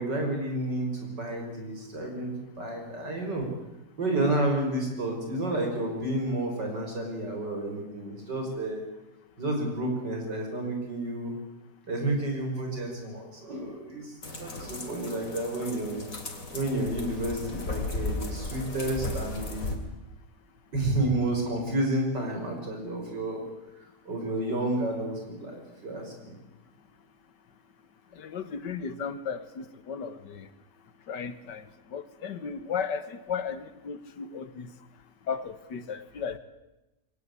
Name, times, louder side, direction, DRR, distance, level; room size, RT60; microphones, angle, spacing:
voice 1, 0.0-3.5 4.0-8.8 9.4-11.3 11.9-16.1 16.5-19.7 20.7-23.5 24.0-26.4, right 1 dB, 85° right, 2 dB, 6.5 m, -30 dB
sound 1, 14.2-19.8, left 2 dB, 50° left, 3.4 m, -36 dB
voice 2, 28.2-30.5 31.1-31.6 31.9-34.7 35.3-36.4, left 6 dB, 90° left, 13 dB, 2.0 m, -35 dB
23.5 x 17.5 x 9.9 m, 0.99 s
omnidirectional pair, 1.8 m